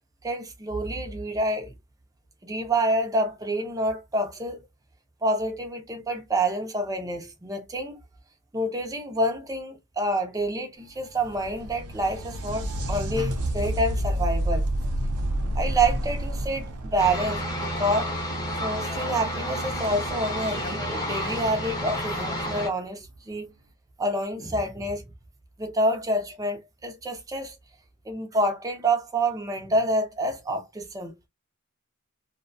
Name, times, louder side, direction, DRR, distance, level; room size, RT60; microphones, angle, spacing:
voice 1, 0.2-1.7 2.4-4.7 5.2-8.0 8.5-14.7 15.6-18.1 18.6-23.5 24.0-25.0 25.6-27.5 28.1-31.1, right 1 dB, 15° right, 0.5 m, -27 dB
sound 1, 10.9-18.5 21.9-22.0 23.1-23.2, right 1 dB, 90° right, 0.6 m, -29 dB
sound 2, 17.0-22.7, equal, 15° left, 0.8 m, -30 dB
2.6 x 2.1 x 2.6 m
head